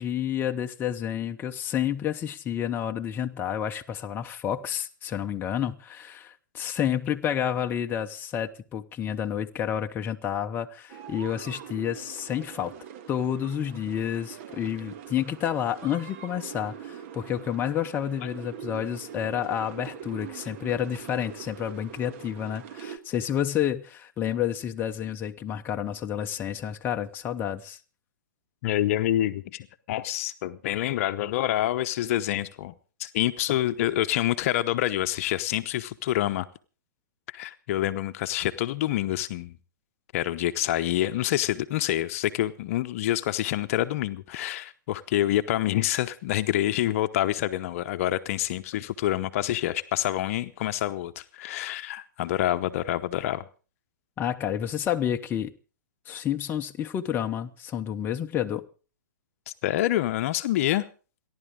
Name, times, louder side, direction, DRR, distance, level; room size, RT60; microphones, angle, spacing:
voice 1, 0.0-12.7 13.1-27.8 54.2-55.5 56.1-58.6, left 9 dB, 20° left, 0.9 m, -30 dB
sound 1, 10.9-23.0, right 8 dB, 45° right, 1.6 m, -43 dB
voice 2, 28.6-32.7 33.0-36.5 37.3-39.5 40.1-53.4 59.6-60.8, left 13 dB, 45° left, 0.9 m, -27 dB
28.5 x 11.5 x 3.8 m
hypercardioid pair, 125°, 10 cm